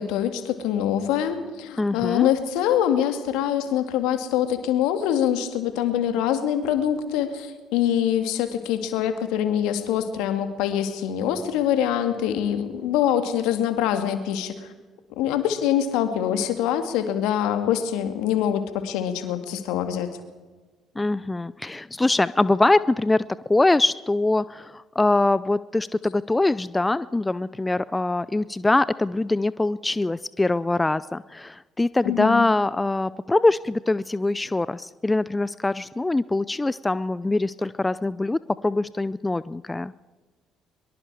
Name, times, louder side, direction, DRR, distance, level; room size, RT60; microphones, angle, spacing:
voice 1, 0.0-14.5 15.2-20.2 32.0-32.5, left 10 dB, 70° left, 8 dB, 2.1 m, -24 dB
voice 2, 1.8-2.3 21.0-39.9, left 2 dB, 15° left, 18 dB, 0.5 m, -23 dB
23.5 x 23.0 x 4.9 m, 1.3 s
hypercardioid pair, 50°, 0 cm